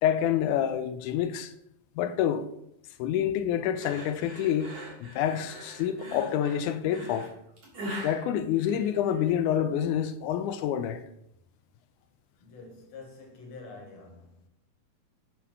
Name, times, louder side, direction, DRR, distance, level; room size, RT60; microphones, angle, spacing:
voice 1, 0.0-1.5 2.0-2.5 3.0-7.3 8.0-11.0, left 10 dB, 85° left, 2.1 m, -27 dB
sound 1, 3.8-9.3, equal, 55° right, 3.6 m, -41 dB
voice 2, 12.4-14.5, left 3 dB, 60° left, 2.7 m, -47 dB
9.3 x 4.3 x 5.4 m
omnidirectional pair, 3.5 m